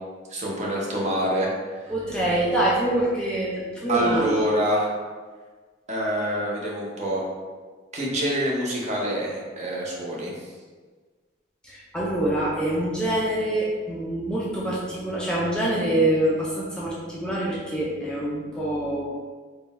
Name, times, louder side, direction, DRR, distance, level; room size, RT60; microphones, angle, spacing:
voice 1, 0.3-1.5 3.9-4.9 5.9-7.2 7.9-10.3, equal, 35° right, -3 dB, 0.8 m, -26 dB
voice 2, 1.9-4.4 11.6-19.0, right 1 dB, 5° left, -6 dB, 0.5 m, -25 dB
3.7 x 2.3 x 4.1 m, 1.5 s
head